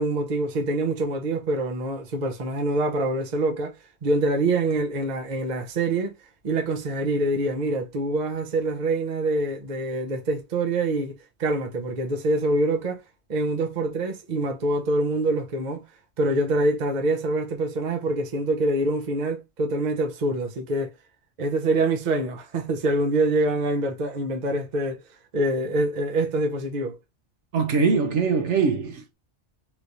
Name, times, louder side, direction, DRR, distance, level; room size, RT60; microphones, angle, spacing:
voice 1, 0.0-3.7 4.0-6.1 6.4-13.0 13.3-15.8 16.2-20.9 21.4-25.0 25.3-27.0, right 2 dB, 45° right, 0.8 m, -25 dB
voice 2, 27.5-29.1, right 5 dB, 70° right, 1.0 m, -22 dB
3.1 x 3.1 x 2.6 m
omnidirectional pair, 1.3 m